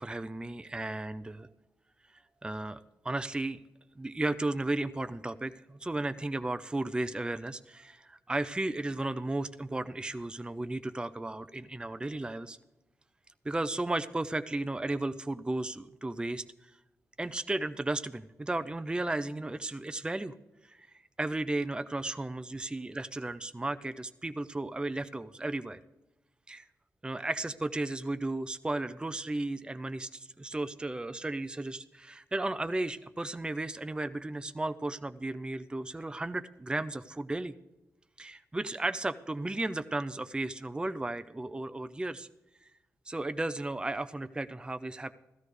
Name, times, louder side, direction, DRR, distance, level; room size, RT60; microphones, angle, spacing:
voice 1, 0.0-1.5 2.4-3.6 4.0-12.6 13.4-16.7 17.2-20.3 20.6-20.9 21.2-25.8 26.5-26.6 27.0-37.5 38.2-42.3 43.1-45.1, right 2 dB, 15° right, 11 dB, 0.5 m, -34 dB
16.0 x 13.5 x 3.3 m, 1.0 s
cardioid pair, 65°, 6 cm